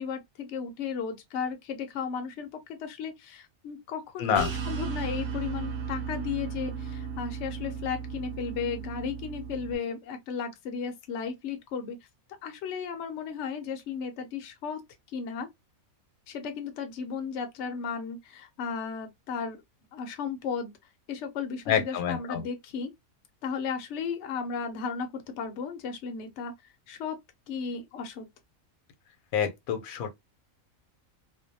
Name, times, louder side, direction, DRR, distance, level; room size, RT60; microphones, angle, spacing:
voice 1, 0.0-12.0 12.4-14.8 15.1-15.5 16.3-19.6 19.9-20.7 21.1-22.9 23.4-26.5 26.9-27.2 27.5-28.3, left 6 dB, 65° left, 0.8 m, -35 dB
voice 2, 4.2-4.5 21.7-22.4 29.3-30.1, left 8 dB, 85° left, 1.0 m, -27 dB
sound 1, 4.3-9.7, right 6 dB, 70° right, 1.0 m, -35 dB
2.5 x 2.1 x 2.6 m
omnidirectional pair, 1.4 m